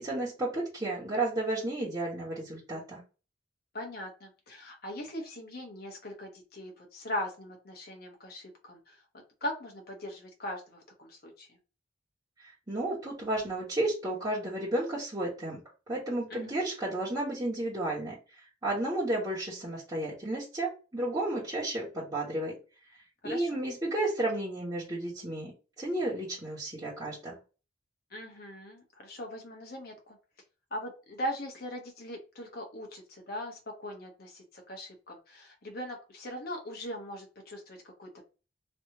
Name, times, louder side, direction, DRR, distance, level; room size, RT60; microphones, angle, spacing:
voice 1, 0.0-3.0 12.4-15.6 15.9-18.1 18.6-22.5 23.2-25.5 25.8-27.3, right 1 dB, 20° right, -9 dB, 1.3 m, -32 dB
voice 2, 3.7-11.6 16.3-16.5 23.2-23.6 28.1-30.2 30.7-38.3, equal, 55° left, 2 dB, 1.2 m, -40 dB
3.2 x 2.9 x 2.8 m, 0.32 s
head